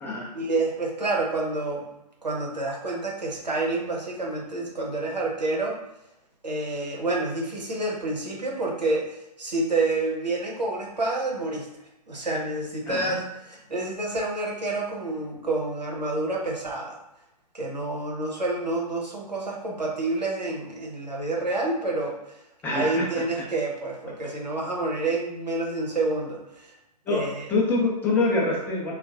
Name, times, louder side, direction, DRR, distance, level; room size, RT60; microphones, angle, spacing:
voice 1, 0.3-1.9 2.2-5.8 6.4-11.7 12.1-17.0 17.5-22.4 22.7-26.7 27.1-27.5, right 2 dB, 85° right, -3 dB, 0.9 m, -28 dB
voice 2, 12.9-13.2 22.6-23.5 27.1-27.2 27.5-28.9, left 2 dB, 10° left, -3 dB, 0.6 m, -25 dB
3.6 x 2.3 x 2.6 m, 0.88 s
figure-of-eight pair, 120°, 21 cm